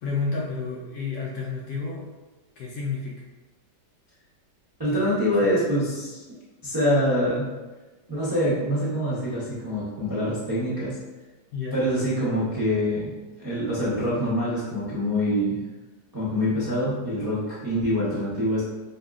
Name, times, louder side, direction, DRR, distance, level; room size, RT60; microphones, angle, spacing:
voice 1, 0.0-2.1 2.6-3.2 4.9-5.6 11.5-11.8, left 4 dB, 70° left, -4 dB, 1.0 m, -31 dB
voice 2, 4.8-6.2 6.6-7.5 8.1-11.0 11.7-13.1 13.4-15.6 16.1-18.6, equal, 25° right, -11 dB, 0.5 m, -25 dB
5.0 x 2.3 x 2.4 m, 1.2 s
omnidirectional pair, 1.9 m